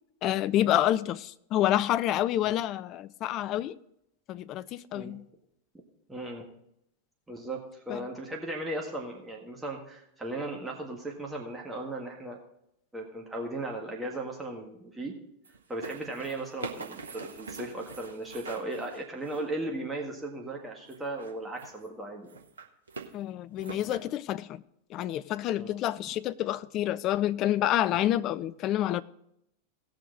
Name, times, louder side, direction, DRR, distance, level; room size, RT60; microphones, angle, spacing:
voice 1, 0.2-3.8 4.3-5.2 7.9-8.0 23.1-24.6 24.9-29.0, left 12 dB, 35° left, 0.4 m, -28 dB
voice 2, 6.1-6.5 7.3-12.4 12.9-15.2 15.7-22.3 25.5-25.7, right 2 dB, 10° right, 1.7 m, -37 dB
sound 1, 15.4-19.6 20.9-21.9 22.2-23.1 23.6-24.0, right 4 dB, 70° right, 1.2 m, -43 dB
17.5 x 6.5 x 4.0 m
figure-of-eight pair, 90°, 0 cm